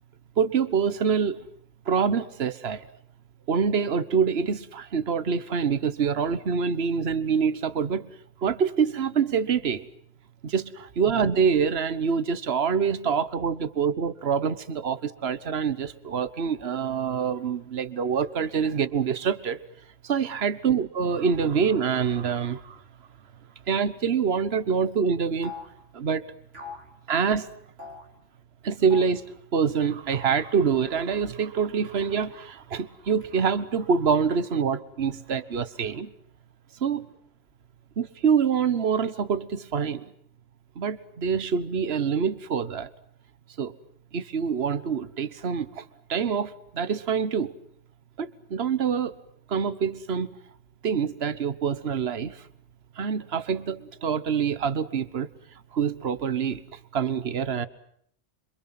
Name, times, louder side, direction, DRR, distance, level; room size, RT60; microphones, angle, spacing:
voice 1, 0.4-1.4 1.9-2.8 3.5-8.1 8.4-9.9 10.4-19.6 20.0-22.8 23.7-25.5 25.9-26.2 27.1-27.5 28.6-29.2 29.5-36.1 36.8-37.1 38.0-40.1 40.8-42.9 43.6-43.7 44.1-45.8 46.1-47.5 48.2-49.2 49.5-50.3 50.8-52.4 53.0-55.3 55.7-56.6 56.9-57.7, right 6 dB, 60° right, 15 dB, 1.5 m, -25 dB
sound 1, 25.4-25.8 26.5-26.9 27.8-28.1 28.9-29.2 30.1-30.4 31.8-32.4 33.2-33.9, left 4 dB, 75° right, 4.5 m, -43 dB
27.0 x 26.0 x 7.6 m, 0.67 s
omnidirectional pair, 1.2 m